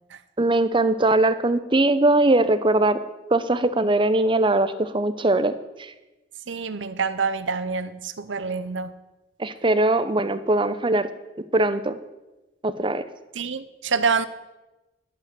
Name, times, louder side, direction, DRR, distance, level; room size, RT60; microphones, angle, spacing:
voice 1, 0.4-3.0 3.3-5.5 5.8-5.9 9.4-11.1 11.5-12.0 12.6-13.0, right 2 dB, 25° right, 12 dB, 0.7 m, -21 dB
voice 2, 6.5-8.9 13.3-14.3, right 5 dB, 85° right, 13 dB, 0.8 m, -26 dB
11.5 x 8.4 x 7.8 m, 1.1 s
head